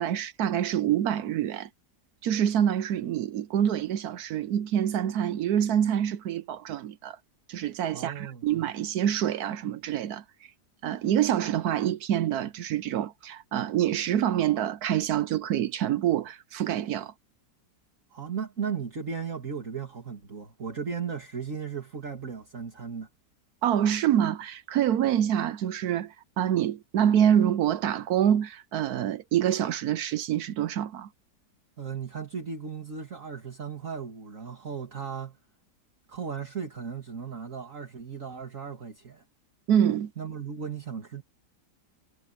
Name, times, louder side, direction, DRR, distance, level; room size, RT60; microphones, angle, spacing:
voice 1, 0.0-1.7 2.2-7.2 7.5-10.2 10.8-17.1 23.6-31.1 39.7-40.1, right 10 dB, 70° right, 1.1 m, -26 dB
voice 2, 7.9-8.5 18.1-23.1 31.8-35.4 36.1-39.2 40.2-41.2, right 6 dB, 50° right, 2.8 m, -36 dB
omnidirectional pair, 1.8 m